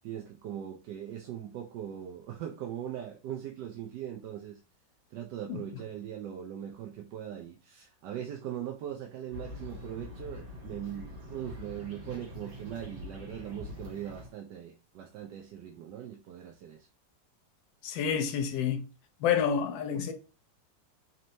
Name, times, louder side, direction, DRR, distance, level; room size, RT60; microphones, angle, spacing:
voice 1, 0.0-4.6 5.1-16.9, right 10 dB, 75° right, 1.1 m, -40 dB
sound 1, 9.3-14.3, left 2 dB, 40° right, 1.8 m, -45 dB
voice 2, 17.8-18.8 19.2-20.1, left 7 dB, 85° left, 1.4 m, -28 dB
4.3 x 2.9 x 2.6 m
omnidirectional pair, 2.0 m